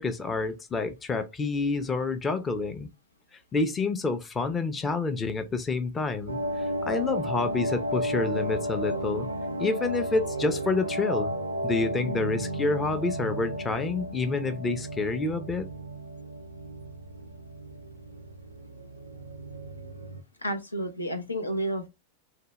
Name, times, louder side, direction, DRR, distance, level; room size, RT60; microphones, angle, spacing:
voice 1, 0.0-2.9 3.5-9.3 9.6-11.3 11.6-15.7, left 3 dB, 20° left, 0.5 m, -28 dB
sound 1, 6.3-20.2, right 1 dB, 85° right, 0.4 m, -33 dB
voice 2, 20.4-21.9, right 1 dB, 80° left, 0.6 m, -31 dB
3.6 x 2.2 x 3.0 m
figure-of-eight pair, 90°, 0 cm